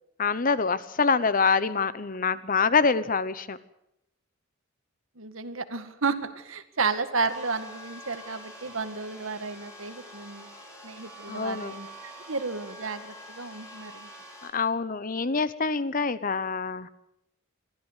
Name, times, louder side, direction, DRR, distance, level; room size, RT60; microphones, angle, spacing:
voice 1, 0.2-3.6 11.3-11.7 14.4-16.9, left 5 dB, 45° left, 15 dB, 0.9 m, -25 dB
voice 2, 5.2-10.5 10.8-14.1, right 4 dB, 85° right, 9 dB, 1.9 m, -32 dB
sound 1, 7.3-14.5, equal, 15° left, 5.2 m, -46 dB
22.5 x 15.0 x 8.2 m, 0.82 s
head